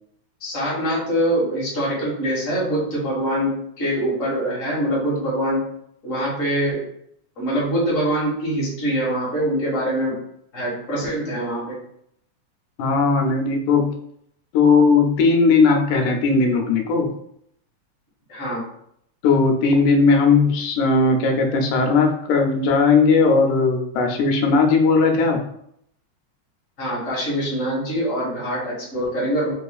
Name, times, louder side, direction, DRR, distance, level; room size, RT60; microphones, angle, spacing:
voice 1, 0.4-5.6 6.0-6.9 7.4-10.2 10.5-11.8 18.3-18.6 26.8-29.5, equal, 35° left, -6 dB, 1.4 m, -24 dB
voice 2, 12.8-13.9 14.5-17.1 19.2-25.4, left 4 dB, 85° left, 2 dB, 2.1 m, -17 dB
4.8 x 3.0 x 2.3 m, 0.72 s
omnidirectional pair, 3.4 m